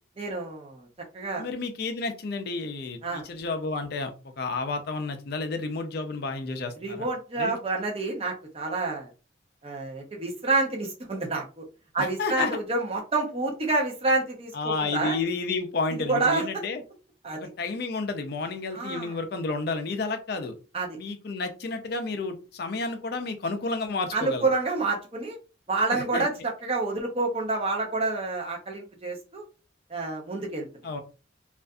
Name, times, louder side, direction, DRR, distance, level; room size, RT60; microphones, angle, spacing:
voice 1, 0.2-0.9 1.1-1.4 3.0-3.2 6.8-9.1 9.6-11.7 11.9-15.2 16.1-16.5 17.2-17.4 18.7-19.2 20.7-21.0 24.1-25.4 25.7-29.4 29.9-30.7, right 3 dB, 30° right, 0 dB, 0.7 m, -28 dB
voice 2, 1.4-7.1 7.4-7.5 12.0-12.6 14.5-16.8 17.3-20.5 21.0-24.4 25.9-26.3 30.8-31.0, left 3 dB, 55° left, 7 dB, 0.5 m, -31 dB
2.5 x 2.4 x 2.3 m, 0.33 s
head